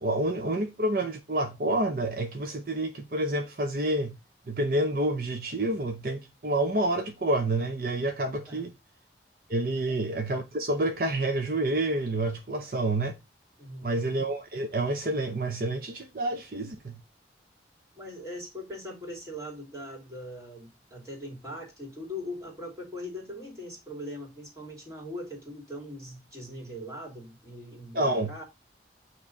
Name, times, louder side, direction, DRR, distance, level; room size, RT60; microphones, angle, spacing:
voice 1, 0.0-4.1 4.5-8.7 9.5-13.1 13.8-16.9 27.9-28.3, right 1 dB, 50° right, 0.7 m, -28 dB
voice 2, 13.6-14.0 17.9-28.4, left 1 dB, 15° right, 2.6 m, -40 dB
8.5 x 3.1 x 5.1 m
head